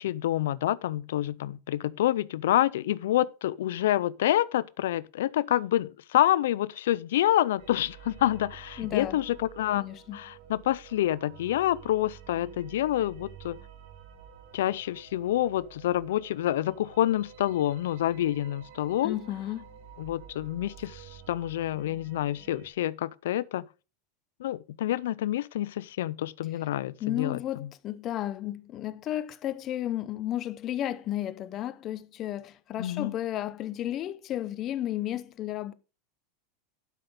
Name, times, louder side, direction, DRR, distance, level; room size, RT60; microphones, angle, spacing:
voice 1, 0.0-9.8 10.1-13.6 14.5-19.2 20.0-23.6 24.4-27.4 32.8-33.1, left 13 dB, 80° left, 0.4 m, -27 dB
sound 1, 7.6-22.7, right 9 dB, 65° right, 3.1 m, -50 dB
voice 2, 8.8-9.2 9.7-10.2 19.0-19.6 27.0-35.7, left 12 dB, 35° left, 0.7 m, -33 dB
11.5 x 6.0 x 4.9 m
supercardioid pair, 135°, 0 cm